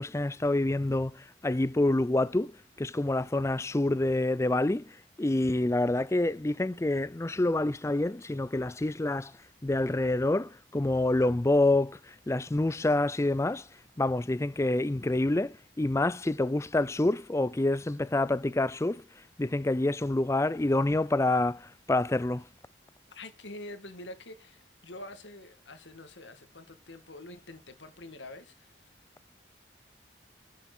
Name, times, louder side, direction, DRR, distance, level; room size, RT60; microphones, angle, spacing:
voice 1, 0.0-9.3 9.6-13.7 14.0-22.5, left 2 dB, 15° left, 0.4 m, -27 dB
voice 2, 23.1-29.0, left 2 dB, 80° left, 1.9 m, -46 dB
11.0 x 7.6 x 3.9 m
head